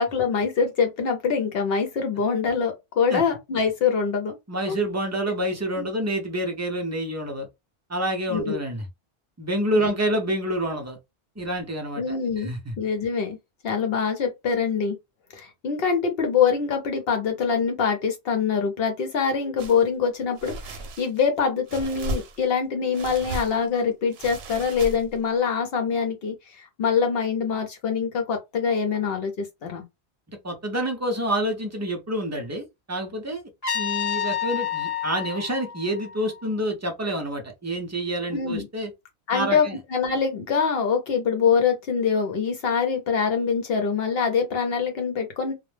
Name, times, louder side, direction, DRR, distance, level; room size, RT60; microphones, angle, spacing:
voice 1, 0.0-4.3 4.7-4.8 5.8-5.9 8.3-8.6 9.8-9.9 12.0-13.4 13.6-15.0 15.3-29.8 38.3-38.7 39.3-45.5, left 6 dB, 70° left, 0.8 m, -24 dB
voice 2, 4.5-7.5 7.9-8.8 9.4-11.0 11.4-12.7 30.4-33.4 33.7-38.9 39.3-39.8, right 1 dB, 25° right, 0.4 m, -28 dB
sound 1, 19.6-19.8 20.4-21.2 21.7-22.6 22.9-23.7 24.1-25.2, right 1 dB, 70° right, 0.8 m, -35 dB
Trumpet, 33.6-36.6, left 9 dB, 40° left, 0.9 m, -29 dB
2.1 x 2.0 x 3.1 m
omnidirectional pair, 1.1 m